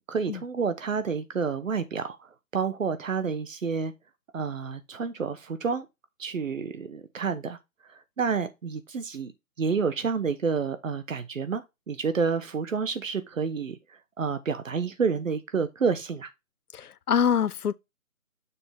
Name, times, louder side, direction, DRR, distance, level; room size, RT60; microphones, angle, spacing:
voice 1, 0.1-2.2 2.5-3.9 4.3-5.9 6.2-7.6 8.2-9.3 9.6-13.8 14.2-16.3, right 5 dB, 60° right, 1.0 m, -29 dB
voice 2, 16.7-17.7, left 8 dB, 85° left, 0.6 m, -25 dB
6.8 x 4.3 x 3.5 m
figure-of-eight pair, 155°, 44 cm